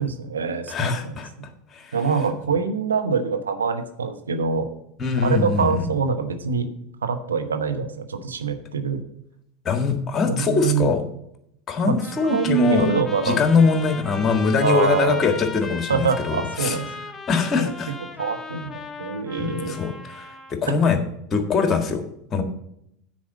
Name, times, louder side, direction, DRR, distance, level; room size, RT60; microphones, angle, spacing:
voice 1, 0.0-1.5 1.9-4.7 5.2-6.7 7.0-9.0 10.2-10.9 11.8-12.0 12.3-13.5 14.6-15.3 15.9-16.9 17.6-17.7 18.2-19.8, right 5 dB, 85° right, 6 dB, 1.0 m, -24 dB
voice 2, 0.7-1.3 1.7-1.9 5.0-5.9 9.6-11.0 11.7-12.9 13.2-16.8 17.3-17.9 19.4-21.0 21.3-22.0 22.3-22.4, left 5 dB, 30° left, 6 dB, 1.6 m, -22 dB
Trumpet, 12.0-20.6, left 4 dB, 15° left, 1.0 m, -37 dB
9.4 x 4.8 x 7.2 m, 0.75 s
hypercardioid pair, 85°, 0 cm